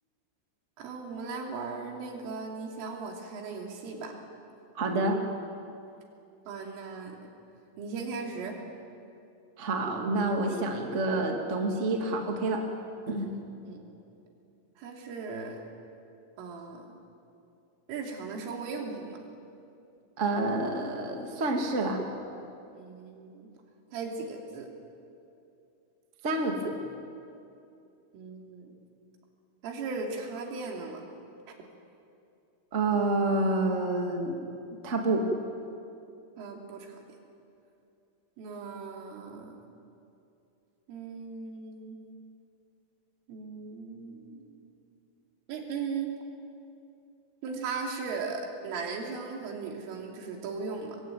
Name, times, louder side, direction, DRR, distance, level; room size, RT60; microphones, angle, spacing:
voice 1, 0.8-4.1 6.5-7.2 7.8-8.6 13.6-13.8 14.8-15.6 16.4-17.0 17.9-19.2 22.7-23.5 23.9-24.7 28.1-28.7 29.6-31.1 36.4-37.0 38.4-39.6 40.9-42.0 43.3-44.6 45.5-46.2 47.4-51.0, right 4 dB, 75° right, 2 dB, 5.4 m, -37 dB
voice 2, 4.7-5.3 9.6-12.6 13.1-13.3 20.2-22.0 26.2-26.7 32.7-34.4 34.8-35.3, right 2 dB, 45° right, 2 dB, 0.8 m, -28 dB
25.0 x 22.5 x 9.3 m, 2.6 s
omnidirectional pair, 5.8 m